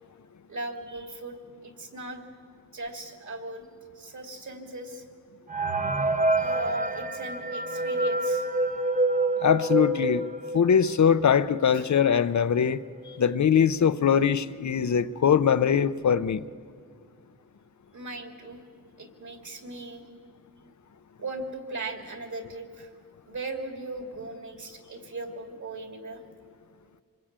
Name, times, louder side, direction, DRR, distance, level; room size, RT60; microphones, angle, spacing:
voice 1, 0.5-1.4 1.6-2.3 2.7-3.7 3.9-5.0 6.3-8.5 11.7-11.9 17.9-18.6 19.0-20.0 21.2-22.9 23.3-26.2, right 2 dB, 55° right, 5 dB, 2.6 m, -38 dB
sound 1, 5.5-10.9 11.4-11.5 11.7-11.8 12.6-12.7 13.0-13.4, right 2 dB, 25° right, 0.7 m, -27 dB
voice 2, 9.4-10.3 10.5-16.4, left 7 dB, 55° left, 12 dB, 0.6 m, -22 dB
26.5 x 20.5 x 8.8 m, 2.1 s
wide cardioid pair, 175°, 35 cm